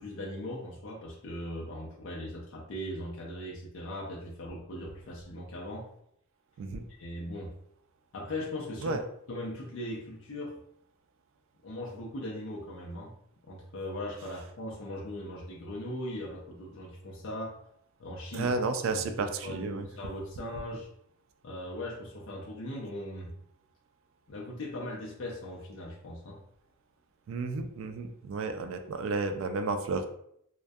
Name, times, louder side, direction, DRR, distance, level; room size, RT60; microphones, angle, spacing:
voice 1, 0.0-5.9 7.0-7.5 8.1-9.0 9.3-10.6 11.6-13.1 13.5-17.6 18.0-18.5 18.9-20.9 21.4-23.3 24.3-26.4, left 1 dB, 70° left, -3 dB, 0.4 m, -39 dB
voice 2, 18.3-19.9 27.3-30.1, right 3 dB, 70° right, 7 dB, 0.3 m, -32 dB
2.5 x 2.1 x 2.3 m, 0.72 s
head